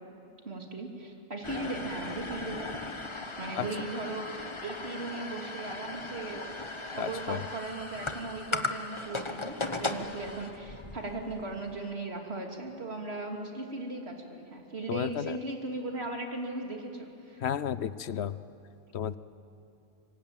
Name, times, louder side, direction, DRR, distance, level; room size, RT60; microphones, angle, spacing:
voice 1, 0.4-2.8 3.4-6.5 6.9-17.4, right 2 dB, 60° right, 1 dB, 3.2 m, -38 dB
sound 1, 1.4-11.8, left 3 dB, 25° left, 1.1 m, -38 dB
voice 2, 7.0-7.5 14.9-15.4 17.4-18.4 18.9-19.2, left 9 dB, 65° left, 15 dB, 1.0 m, -32 dB
25.0 x 24.5 x 9.1 m, 2.9 s
omnidirectional pair, 1.2 m